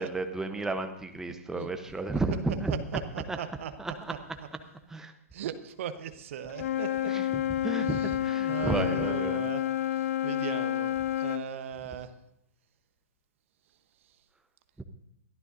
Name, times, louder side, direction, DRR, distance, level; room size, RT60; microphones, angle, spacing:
voice 1, 0.0-2.8 3.3-3.4 3.8-4.1 4.9-5.1 7.1-9.4 14.8-14.9, right 2 dB, 5° right, 6 dB, 0.9 m, -32 dB
voice 2, 2.9-3.7 4.1-4.2 5.3-7.1 7.8-8.2 8.5-9.6 9.9-12.1, right 9 dB, 55° right, 10 dB, 1.1 m, -38 dB
Wind instrument woodwind instrument, 6.5-11.5, left 12 dB, 60° left, 0.4 m, -29 dB
22.0 x 13.5 x 2.7 m, 0.79 s
figure-of-eight pair, 115°, 8 cm